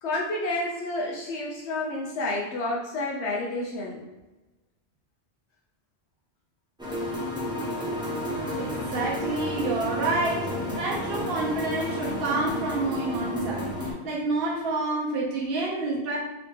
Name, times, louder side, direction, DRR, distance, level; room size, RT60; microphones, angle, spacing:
voice 1, 0.0-4.0, left 2 dB, 80° left, -3 dB, 0.9 m, -30 dB
sound 1, 6.8-13.9, left 1 dB, 5° right, 0.7 m, -31 dB
voice 2, 8.6-13.7 14.0-16.2, right 2 dB, 65° right, -3 dB, 0.8 m, -28 dB
3.1 x 2.8 x 3.4 m, 1.1 s
omnidirectional pair, 1.1 m